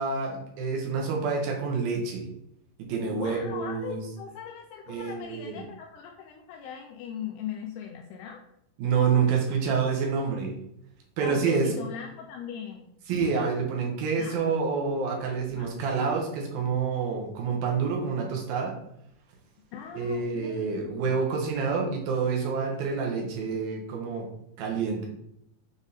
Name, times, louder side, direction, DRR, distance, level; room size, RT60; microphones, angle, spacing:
voice 1, 0.0-2.2 2.8-4.0 4.9-5.6 8.8-10.5 11.2-11.7 13.1-18.7 19.9-24.3 24.6-25.1, right 5 dB, 70° right, 0 dB, 2.6 m, -28 dB
voice 2, 3.1-8.4 11.2-12.9 14.2-14.7 15.5-15.7 19.7-21.2, left 7 dB, 90° left, 2 dB, 2.3 m, -39 dB
7.2 x 3.6 x 4.0 m, 0.76 s
omnidirectional pair, 5.3 m